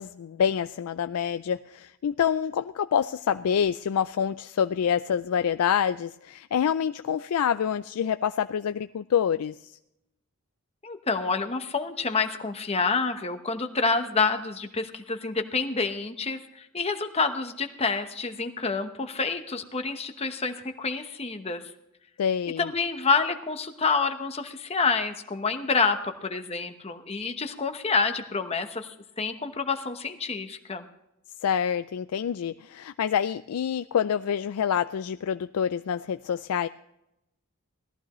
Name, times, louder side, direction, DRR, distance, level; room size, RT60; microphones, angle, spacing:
voice 1, 0.0-9.8 22.2-22.7 31.4-36.7, left 8 dB, 85° left, 12 dB, 0.4 m, -27 dB
voice 2, 10.8-21.7 22.6-30.9, left 4 dB, 30° left, 7 dB, 1.0 m, -28 dB
18.0 x 14.0 x 3.1 m, 0.84 s
head